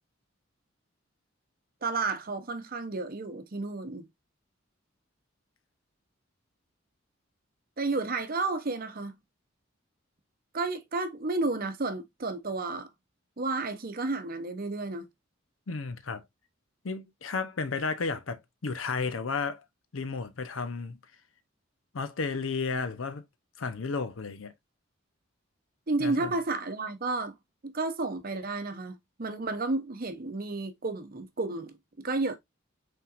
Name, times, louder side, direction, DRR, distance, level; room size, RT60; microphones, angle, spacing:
voice 1, 1.8-4.1 7.8-9.1 10.5-12.9 13.4-15.1 25.9-27.3 27.6-31.7 32.0-32.4, right 3 dB, 45° right, 0.8 m, -31 dB
voice 2, 15.7-16.2 16.8-19.6 19.9-21.0 21.9-23.2 23.6-24.5 26.0-26.3, left 4 dB, 90° left, 0.7 m, -33 dB
5.7 x 3.7 x 2.4 m
head